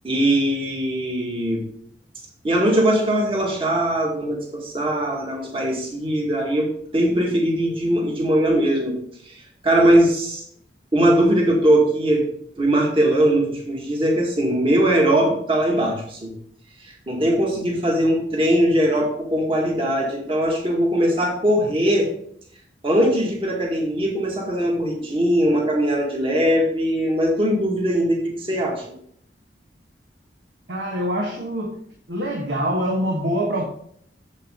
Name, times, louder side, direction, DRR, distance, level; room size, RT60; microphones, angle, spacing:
voice 1, 0.0-1.6 2.4-9.0 9.3-10.4 10.9-12.3 12.6-16.3 16.8-22.1 22.8-28.8, right 1 dB, 30° right, -1 dB, 2.0 m, -20 dB
voice 2, 30.7-31.8 32.1-33.7, equal, 80° right, -1 dB, 1.4 m, -24 dB
7.6 x 7.5 x 3.8 m, 0.65 s
head